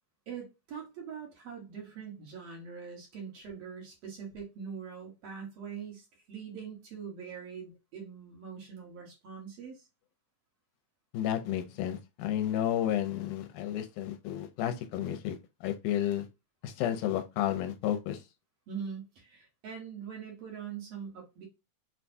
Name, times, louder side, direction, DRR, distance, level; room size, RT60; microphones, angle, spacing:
voice 1, 0.3-9.9 18.7-21.5, right 6 dB, 60° right, 2.1 m, -43 dB
voice 2, 11.1-16.3 16.6-18.2, left 11 dB, 85° left, 2.1 m, -32 dB
6.0 x 2.3 x 2.6 m
omnidirectional pair, 3.6 m